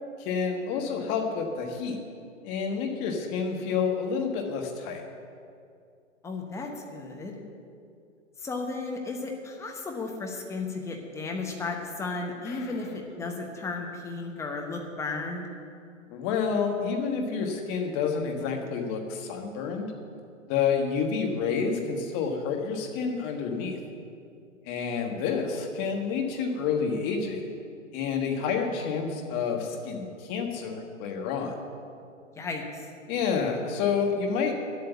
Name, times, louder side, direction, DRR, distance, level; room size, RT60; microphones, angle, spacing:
voice 1, 0.2-2.0 2.4-5.0 12.5-12.7 16.1-19.9 20.5-23.8 24.6-27.4 27.9-31.5 33.1-34.5, left 6 dB, 25° left, 3 dB, 1.4 m, -29 dB
voice 2, 6.2-7.3 8.4-15.5 32.3-32.8, left 3 dB, 5° left, 1 dB, 0.9 m, -34 dB
10.5 x 8.2 x 7.1 m, 2.4 s
figure-of-eight pair, 125°, 39 cm